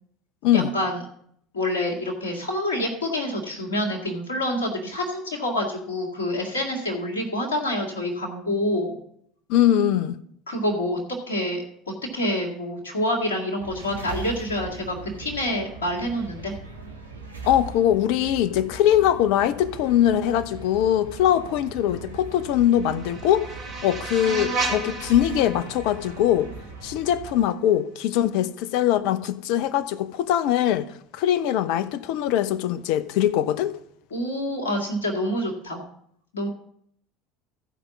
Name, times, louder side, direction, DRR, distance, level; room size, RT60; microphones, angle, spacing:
voice 1, 0.5-1.0 1.5-9.0 10.5-11.0 11.3-11.6 12.1-16.6 34.1-35.8 36.3-36.5, left 1 dB, 75° left, 2.0 m, -27 dB
voice 2, 9.5-10.2 17.4-23.5 23.8-26.5 26.8-33.7, left 11 dB, 60° left, 0.7 m, -22 dB
sound 1, 13.6-27.4, right 3 dB, 90° right, 1.4 m, -40 dB
sound 2, 22.3-27.3, right 3 dB, 50° right, 3.7 m, -33 dB
14.5 x 5.1 x 7.2 m
figure-of-eight pair, 65°, 0 cm